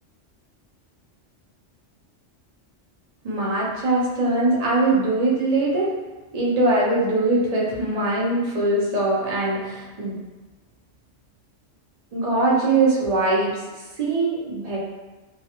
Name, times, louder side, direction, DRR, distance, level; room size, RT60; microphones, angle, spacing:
voice 1, 3.2-5.9 6.3-10.1 12.1-13.6 14.0-14.8, right 2 dB, 45° right, -5 dB, 0.5 m, -22 dB
2.3 x 2.2 x 2.8 m, 1.2 s
omnidirectional pair, 1.2 m